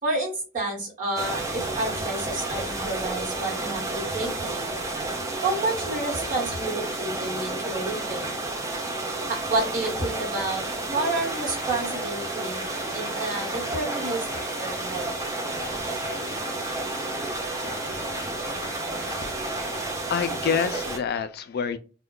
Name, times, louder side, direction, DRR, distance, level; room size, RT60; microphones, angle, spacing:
voice 1, 0.0-4.5 5.4-8.3 9.3-12.6 12.9-15.1, right 2 dB, 40° right, -3 dB, 1.3 m, -30 dB
sound 1, 1.2-21.0, right 2 dB, 15° right, 0.5 m, -31 dB
sound 2, 11.2-20.0, left 2 dB, 30° left, 0.9 m, -42 dB
voice 2, 19.2-21.8, left 6 dB, 50° left, 11 dB, 0.3 m, -28 dB
2.3 x 2.1 x 3.7 m, 0.34 s
head